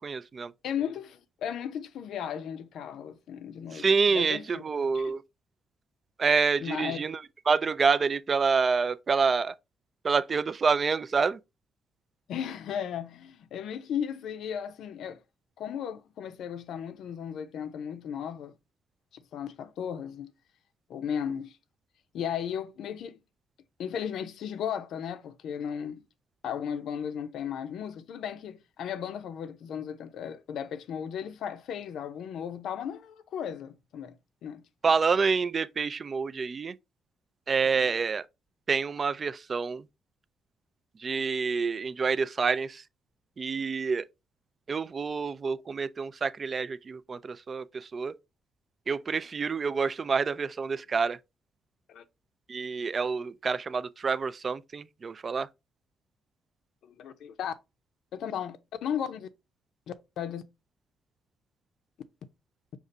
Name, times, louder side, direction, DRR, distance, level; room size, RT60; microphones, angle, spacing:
voice 1, 0.0-0.5 3.7-5.2 6.2-9.5 10.0-11.4 34.8-36.7 37.5-38.2 38.7-39.8 41.0-42.8 43.4-44.1 44.7-48.1 48.9-51.2 52.5-55.5, right 5 dB, 40° right, 0.3 m, -27 dB
voice 2, 0.6-3.9 4.1-4.6 4.9-5.1 6.6-7.0 12.3-15.2 15.6-18.5 19.1-20.3 20.9-21.6 22.1-23.2 23.8-26.0 26.4-34.2 34.4-34.6 37.6-37.9 51.9-52.0 56.8-57.5 58.1-59.3 59.9-60.4, left 8 dB, 75° left, 0.5 m, -35 dB
5.3 x 2.4 x 3.8 m
cardioid pair, 90°, 0 cm